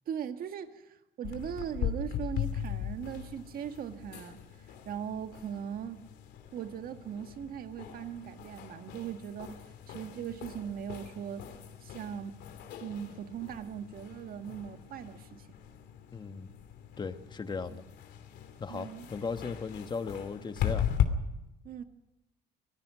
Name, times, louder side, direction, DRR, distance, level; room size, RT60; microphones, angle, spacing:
voice 1, 0.1-4.4 4.9-6.0 6.5-11.5 11.8-12.4 12.8-15.5 17.7-17.9 18.7-19.1 21.6-21.8, right 9 dB, 60° right, 1.8 m, -39 dB
sound 1, 1.2-21.1, left 10 dB, 80° left, 2.8 m, -38 dB
voice 2, 16.1-16.5 17.0-17.8 18.6-20.9, left 4 dB, 25° left, 1.4 m, -37 dB
25.5 x 18.5 x 6.3 m
cardioid pair, 110°, 17 cm